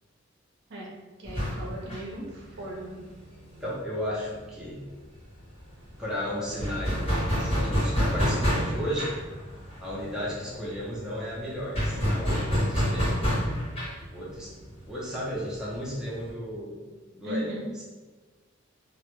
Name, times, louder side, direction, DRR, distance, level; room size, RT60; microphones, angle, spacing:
voice 1, 1.2-3.0 17.2-17.7, right 1 dB, 60° right, -2 dB, 0.5 m, -37 dB
sound 1, 1.3-4.7 4.9-5.1 5.3-16.3, equal, 30° left, 0.9 m, -29 dB
voice 2, 3.6-4.8 6.0-9.1 9.8-13.2 14.1-14.5 14.9-16.8 17.1-17.8, equal, 5° right, -7 dB, 0.5 m, -34 dB
2.1 x 2.0 x 2.9 m, 1.3 s
head